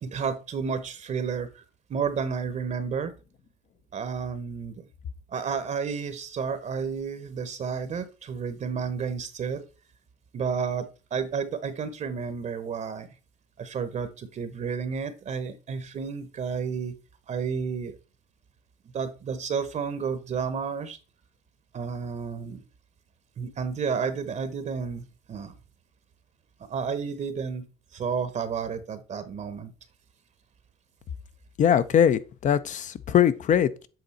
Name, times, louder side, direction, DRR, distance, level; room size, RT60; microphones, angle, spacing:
voice 1, 0.0-1.6 1.9-3.1 3.9-4.7 5.3-9.6 10.3-13.1 13.6-16.9 17.3-18.0 18.9-21.0 21.7-22.6 23.4-25.5 26.6-27.6 27.9-29.7, right 6 dB, 45° right, 0.9 m, -31 dB
voice 2, 31.6-33.9, left 9 dB, 45° left, 0.7 m, -22 dB
7.8 x 3.9 x 4.2 m
cardioid pair, 110°, 17 cm